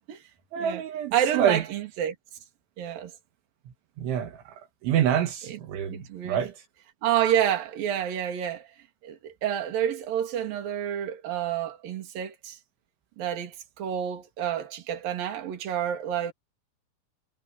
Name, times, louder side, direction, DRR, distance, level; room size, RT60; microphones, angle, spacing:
voice 1, 0.5-1.6 4.0-6.6, right 9 dB, 75° right, 4.1 m, -27 dB
voice 2, 1.1-2.2 2.8-3.1 5.5-5.6 5.9-6.4 7.0-8.7 9.0-12.6 13.2-16.3, right 10 dB, 50° right, 4.1 m, -29 dB
omnidirectional pair, 5.5 m